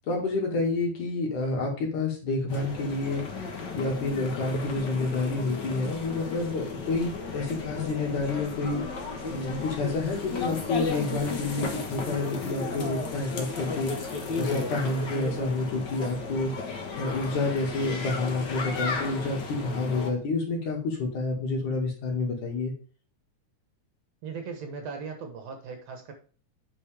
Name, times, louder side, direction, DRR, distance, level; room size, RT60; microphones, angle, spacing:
voice 1, 0.1-3.2 3.7-16.5 17.0-22.7, left 3 dB, 70° left, 0 dB, 3.6 m, -29 dB
sound 1, 2.5-20.1, left 4 dB, 50° left, 1.4 m, -34 dB
voice 2, 24.2-26.1, right 5 dB, 60° right, 5 dB, 2.1 m, -38 dB
8.4 x 6.2 x 3.4 m, 0.39 s
omnidirectional pair, 3.8 m